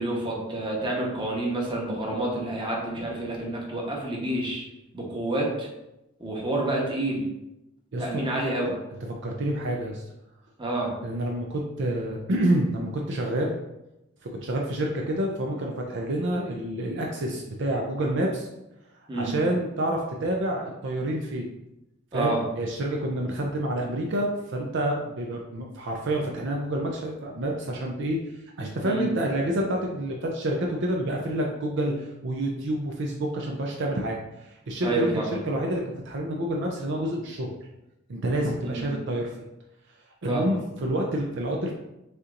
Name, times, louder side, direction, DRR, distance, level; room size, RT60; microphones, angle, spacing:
voice 1, 0.0-4.6 4.9-5.7 6.2-7.2 8.0-8.7 10.6-10.9 19.1-19.3 22.1-22.4 28.8-29.1 34.8-35.3 38.7-38.9 40.3-40.5, right 2 dB, 25° right, -2 dB, 1.0 m, -28 dB
voice 2, 7.9-8.2 8.6-8.7 9.1-10.0 11.0-13.5 14.2-18.5 19.1-21.5 22.1-28.2 28.6-37.5 38.1-39.3 40.2-41.7, right 1 dB, 60° right, 0 dB, 0.5 m, -28 dB
6.6 x 2.9 x 2.5 m, 0.91 s
head